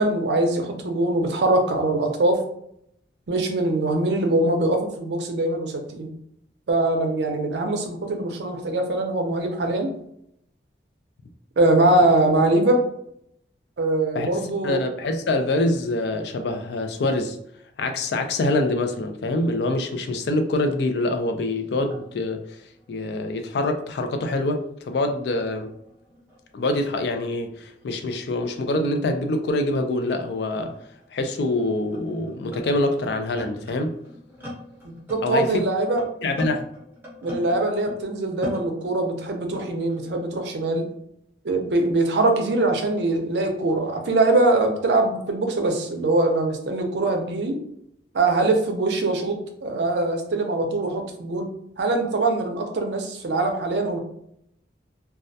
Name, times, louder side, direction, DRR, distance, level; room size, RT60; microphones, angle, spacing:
voice 1, 0.0-2.4 3.3-6.1 6.7-9.9 11.6-12.8 13.8-14.8 34.8-36.0 37.2-40.9 41.4-47.6 48.1-51.5 51.8-54.0, right 2 dB, 70° right, 0.5 m, -22 dB
voice 2, 14.1-17.4 17.8-22.4 22.9-25.7 26.5-30.7 31.1-34.0 35.2-35.6 36.2-36.6, left 2 dB, 70° left, 0.3 m, -25 dB
sound 1, 21.7-24.5 24.8-28.6 29.5-29.6 30.3-38.1 38.4-40.1, left 1 dB, 10° right, 0.6 m, -42 dB
2.3 x 2.1 x 2.6 m
head